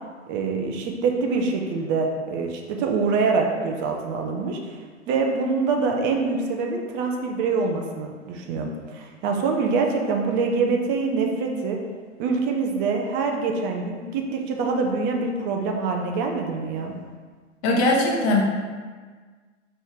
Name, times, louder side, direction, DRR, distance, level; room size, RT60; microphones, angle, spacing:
voice 1, 0.3-11.8 12.2-16.9, right 4 dB, 30° right, 2 dB, 0.5 m, -25 dB
voice 2, 17.6-18.4, left 2 dB, 35° left, -1 dB, 0.9 m, -20 dB
4.4 x 3.1 x 3.4 m, 1.5 s
figure-of-eight pair, 100°, 38 cm